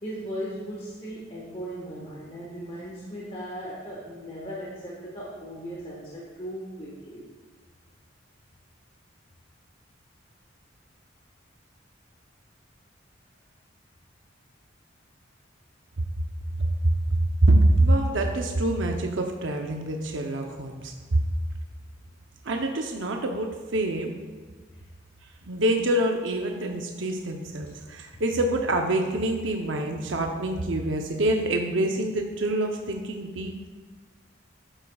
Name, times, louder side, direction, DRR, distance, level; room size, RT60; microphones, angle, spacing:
voice 1, 0.0-7.3 24.7-24.9 27.7-27.8, equal, 30° left, -5 dB, 1.3 m, -37 dB
voice 2, 16.6-21.2 22.4-24.1 25.4-33.7, right 1 dB, 75° right, 3 dB, 0.7 m, -25 dB
11.5 x 8.8 x 2.3 m, 1.4 s
head